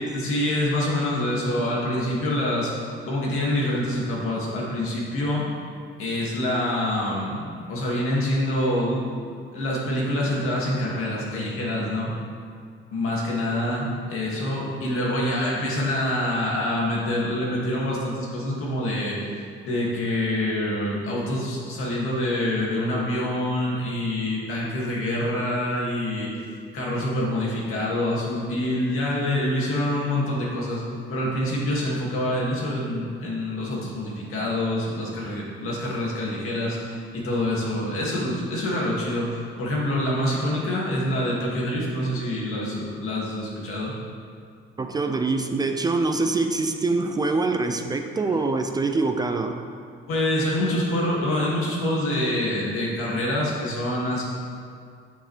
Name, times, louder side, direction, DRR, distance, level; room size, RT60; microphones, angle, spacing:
voice 1, 0.0-2.7 3.1-5.4 6.0-9.1 9.5-12.1 12.9-19.2 19.6-26.3 26.7-30.8 31.1-43.9 48.3-48.4 50.1-54.2, left 1 dB, 85° left, -4 dB, 2.2 m, -26 dB
voice 2, 44.8-49.6, right 3 dB, 20° right, 5 dB, 0.3 m, -24 dB
9.0 x 8.1 x 3.3 m, 2.2 s
cardioid pair, 180°, 21 cm